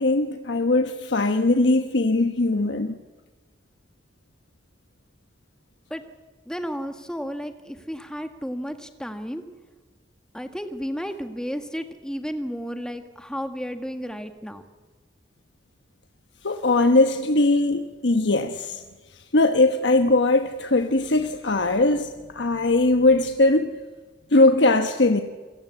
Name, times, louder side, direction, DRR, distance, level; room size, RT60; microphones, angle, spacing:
voice 1, 0.0-2.9 16.4-18.8 19.3-23.7 24.3-25.2, left 2 dB, 85° left, 1.2 m, -20 dB
voice 2, 6.5-9.4 10.3-14.6, equal, 5° left, 1.7 m, -32 dB
28.0 x 17.5 x 8.3 m
head